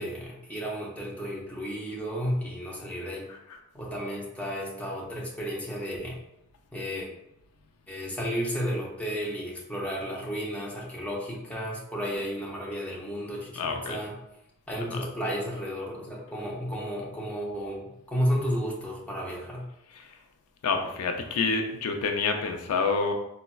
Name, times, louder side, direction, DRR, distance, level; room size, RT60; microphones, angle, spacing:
voice 1, 0.0-3.3 3.7-6.2 6.7-7.1 7.9-14.1 14.7-19.7, equal, 5° left, -3 dB, 0.5 m, -33 dB
voice 2, 13.5-14.0 14.8-15.0 20.0-20.1 20.6-23.1, left 4 dB, 80° left, 5 dB, 0.4 m, -28 dB
4.0 x 2.2 x 2.2 m, 0.83 s
head